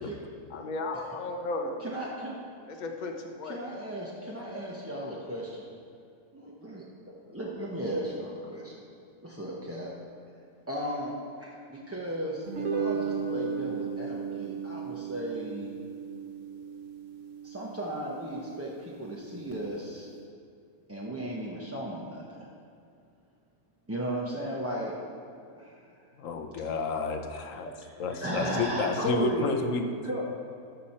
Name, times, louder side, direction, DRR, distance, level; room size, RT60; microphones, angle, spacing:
voice 1, 0.5-2.1 2.7-3.6, left 2 dB, 40° left, 3 dB, 0.7 m, -35 dB
voice 2, 1.8-2.4 3.4-5.7 6.3-6.9 7.3-8.8 9.2-9.9 10.7-11.1 11.4-15.7 17.4-20.1 20.9-22.5 23.9-24.9 25.6-25.8 27.5-27.6 28.0-29.5 30.0-30.3, right 1 dB, 15° right, -5 dB, 0.6 m, -35 dB
sound 1, 12.5-19.0, right 6 dB, 60° right, 1.0 m, -35 dB
voice 3, 26.2-27.7 28.0-29.9, left 4 dB, 60° left, 5 dB, 1.1 m, -30 dB
13.5 x 6.0 x 4.3 m, 2.5 s
omnidirectional pair, 1.7 m